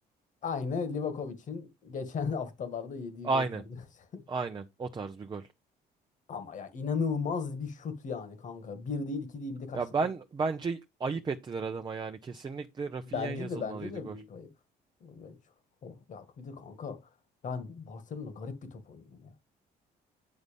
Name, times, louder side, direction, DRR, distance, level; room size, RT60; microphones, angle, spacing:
voice 1, 0.4-3.4 4.1-4.2 6.3-9.8 13.0-14.5 15.0-15.4 15.8-17.0 17.4-19.3, left 5 dB, 50° left, 2.0 m, -36 dB
voice 2, 3.2-3.6 4.3-5.5 9.7-14.2, right 4 dB, 25° right, 0.8 m, -33 dB
9.8 x 3.9 x 5.3 m
cardioid pair, 110°, 17 cm